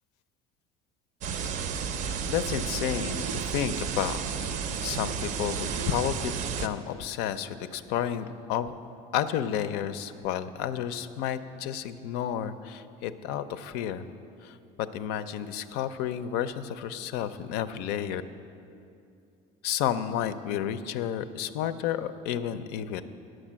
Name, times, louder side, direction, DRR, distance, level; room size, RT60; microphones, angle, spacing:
sound 1, 1.2-6.7, right 6 dB, 50° right, 0.5 m, -32 dB
voice 1, 2.3-4.2 4.8-8.7 9.1-14.1 14.4-18.2 19.6-23.0, left 10 dB, 75° left, 12 dB, 0.5 m, -31 dB
9.0 x 6.4 x 7.4 m, 2.6 s
cardioid pair, 130°, 17 cm